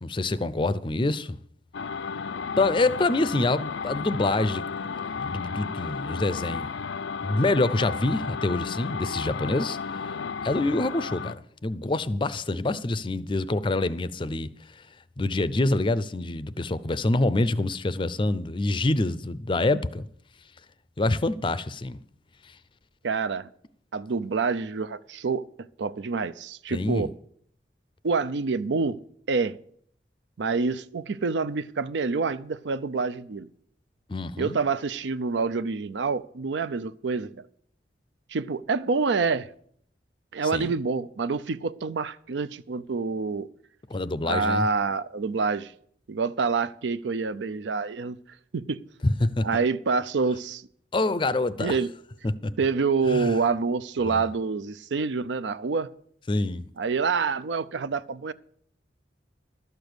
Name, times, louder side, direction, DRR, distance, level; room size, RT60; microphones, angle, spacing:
voice 1, 0.0-1.4 2.6-4.6 5.2-6.7 7.2-9.8 10.4-14.5 15.2-20.1 21.0-22.0 26.7-27.1 34.1-34.6 40.5-40.7 43.9-44.7 49.0-49.5 50.9-51.8 52.2-52.5 53.1-53.3 54.0-54.2 56.3-56.6, left 2 dB, 25° left, 0.5 m, -26 dB
sound 1, 1.7-11.3, left 5 dB, 75° left, 0.5 m, -33 dB
voice 2, 23.0-23.5 23.9-25.4 25.8-27.1 28.0-29.0 29.3-29.6 30.4-33.5 34.4-37.4 38.3-39.5 40.3-43.5 44.2-45.7 46.1-48.2 48.5-48.8 49.4-50.6 51.6-51.9 52.6-55.9 56.8-58.3, right 4 dB, 75° right, 0.5 m, -27 dB
12.5 x 6.8 x 8.0 m
head